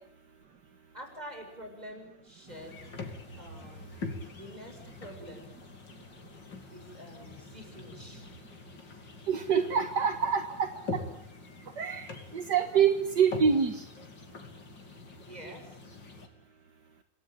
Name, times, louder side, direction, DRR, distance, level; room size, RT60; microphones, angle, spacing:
voice 1, 0.9-2.8 3.3-4.0 4.3-5.5 6.7-8.3 15.2-15.8, equal, 20° right, 4 dB, 6.7 m, -47 dB
sound 1, 2.5-16.3, left 3 dB, 80° left, 3.7 m, -44 dB
voice 2, 9.3-11.0 11.8-13.9, right 7 dB, 70° right, 8 dB, 2.2 m, -26 dB
27.0 x 19.0 x 9.2 m, 0.69 s
omnidirectional pair, 1.9 m